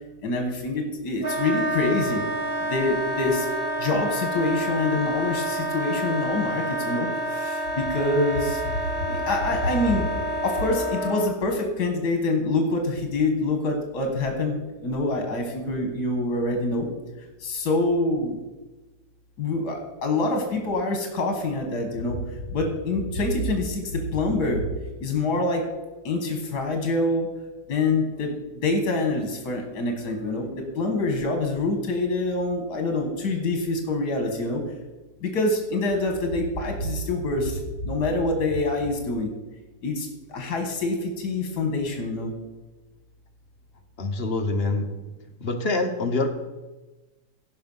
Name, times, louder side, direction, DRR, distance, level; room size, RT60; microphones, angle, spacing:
voice 1, 0.2-2.2 2.6-3.5 3.8-8.6 9.1-10.1 10.4-16.9 17.2-18.4 19.4-22.2 22.5-24.6 25.0-25.6 26.0-27.3 27.7-34.6 35.2-39.3 39.8-42.3, left 2 dB, 70° left, 3 dB, 2.0 m, -26 dB
Wind instrument woodwind instrument, 1.2-11.3, equal, 40° right, 1.3 m, -28 dB
voice 2, 44.0-44.9 45.4-46.3, left 2 dB, 45° left, 5 dB, 1.1 m, -25 dB
16.5 x 5.6 x 5.5 m, 1.2 s
omnidirectional pair, 1.7 m